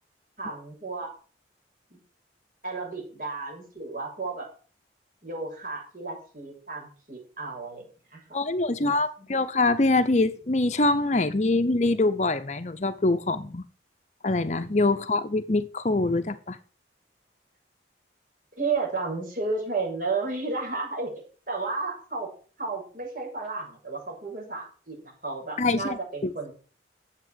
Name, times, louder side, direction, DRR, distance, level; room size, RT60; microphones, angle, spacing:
voice 1, 0.4-1.1 1.9-2.0 2.6-4.5 5.2-8.2 8.8-8.9 18.6-22.3 22.6-26.5, right 3 dB, 45° right, 6.9 m, -33 dB
voice 2, 8.3-13.6 14.2-16.6 25.6-26.3, left 2 dB, 40° left, 0.7 m, -24 dB
10.5 x 8.2 x 7.6 m
head